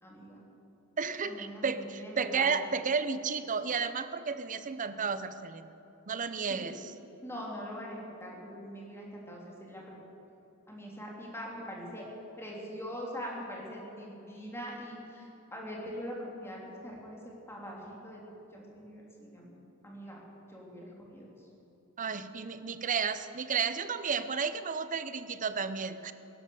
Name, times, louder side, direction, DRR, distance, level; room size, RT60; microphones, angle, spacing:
voice 1, 0.0-0.4 1.2-2.5 6.5-6.6 7.2-9.9 10.7-12.1 12.4-17.2 17.5-18.2 18.5-19.6 19.8-20.2 20.5-21.5, equal, 10° left, -3 dB, 3.2 m, -42 dB
voice 2, 1.0-5.7 6.1-6.9 22.0-26.1, right 5 dB, 35° right, 12 dB, 0.7 m, -32 dB
16.0 x 12.0 x 7.0 m, 2.9 s
head